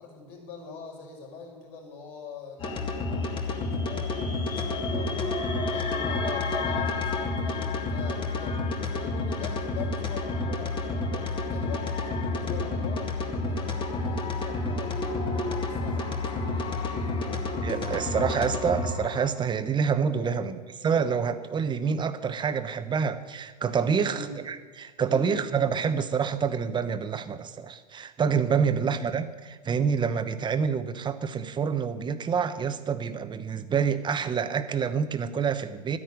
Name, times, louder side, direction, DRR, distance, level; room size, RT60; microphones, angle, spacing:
voice 1, 0.0-17.4 20.2-20.5 24.0-24.5 25.0-25.4 28.6-28.9, left 4 dB, 50° left, 0 dB, 5.5 m, -43 dB
sound 1, 2.6-19.3, left 3 dB, 25° left, 2.1 m, -30 dB
voice 2, 17.6-20.6 20.8-36.0, right 6 dB, 20° right, 11 dB, 1.1 m, -27 dB
12.5 x 10.0 x 9.3 m, 1.3 s
hypercardioid pair, 110°, 21 cm